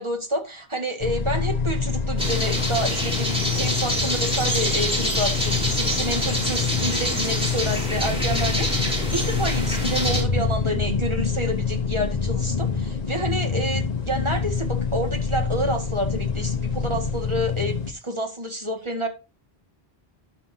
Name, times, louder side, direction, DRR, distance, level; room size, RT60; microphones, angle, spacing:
voice 1, 0.0-19.1, right 1 dB, 30° right, 4 dB, 1.9 m, -29 dB
sound 1, 1.0-17.9, left 5 dB, 40° left, 1.0 m, -26 dB
sound 2, 2.2-10.2, equal, 5° right, 2.9 m, -26 dB
12.0 x 7.0 x 2.8 m, 0.30 s
omnidirectional pair, 1.1 m